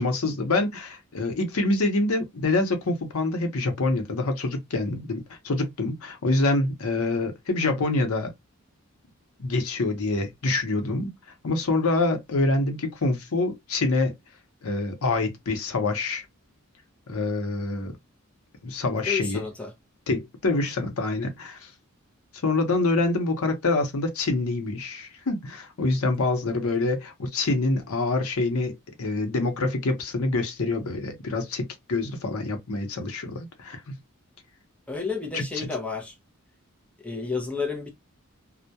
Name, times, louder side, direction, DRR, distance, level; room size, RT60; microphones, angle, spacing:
voice 1, 0.0-8.3 9.4-11.1 11.4-14.1 14.6-16.2 17.1-18.0 18.6-19.4 20.1-21.7 22.4-34.0 35.3-35.7, left 2 dB, 90° left, 0.7 m, -26 dB
voice 2, 19.0-19.7 34.9-36.1 37.0-37.9, left 4 dB, 5° left, 0.5 m, -31 dB
2.2 x 2.1 x 2.6 m
head